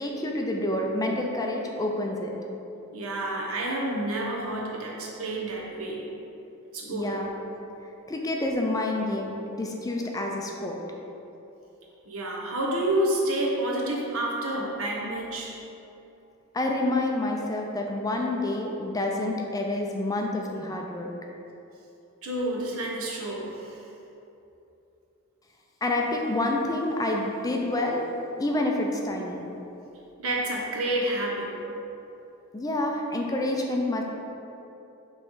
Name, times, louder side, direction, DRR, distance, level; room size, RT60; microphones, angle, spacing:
voice 1, 0.0-2.4 6.9-7.3 8.1-10.8 16.5-21.1 25.8-28.0 28.4-29.4 32.5-34.0, left 1 dB, 15° left, 0 dB, 0.4 m, -28 dB
voice 2, 2.9-6.1 6.7-7.2 12.1-15.6 22.2-23.8 30.2-31.6, right 1 dB, 65° right, -2 dB, 1.0 m, -29 dB
5.8 x 3.2 x 5.4 m, 2.9 s
head